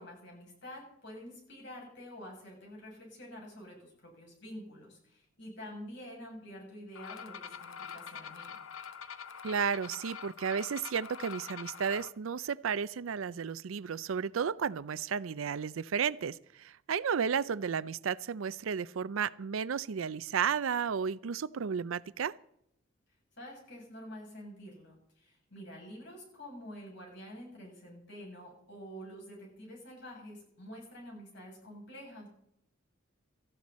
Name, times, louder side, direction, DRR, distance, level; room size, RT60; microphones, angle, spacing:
voice 1, 0.0-8.6 23.4-32.3, equal, 60° left, -1 dB, 7.5 m, -48 dB
sound 1, 6.9-12.1, left 6 dB, 90° left, 0.9 m, -45 dB
voice 2, 9.4-22.3, right 6 dB, 85° right, 18 dB, 0.5 m, -33 dB
17.5 x 14.5 x 4.2 m, 0.74 s
head